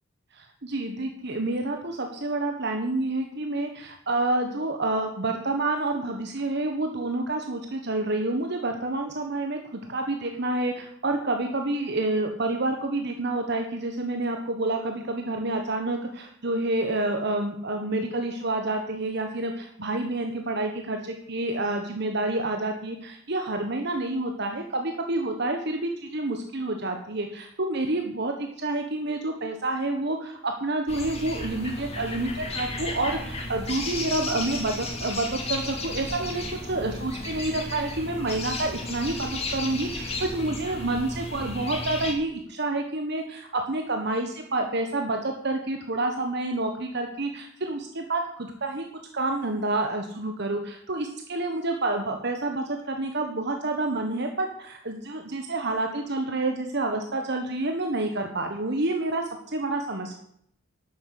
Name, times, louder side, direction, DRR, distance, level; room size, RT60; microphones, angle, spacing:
voice 1, 0.3-48.8 49.1-60.2, right 2 dB, 50° right, 4 dB, 1.4 m, -28 dB
sound 1, 30.9-42.1, left 2 dB, 30° left, 2.6 m, -34 dB
12.0 x 8.9 x 8.4 m, 0.69 s
head